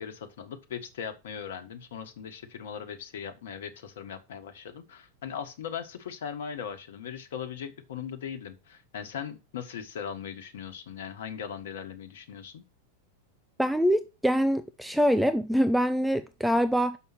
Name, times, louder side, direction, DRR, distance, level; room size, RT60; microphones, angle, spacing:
voice 1, 0.0-12.6, left 7 dB, 60° left, 1.4 m, -39 dB
voice 2, 13.6-17.0, equal, ahead, 0.5 m, -24 dB
6.5 x 5.6 x 6.1 m
figure-of-eight pair, 90°, 0 cm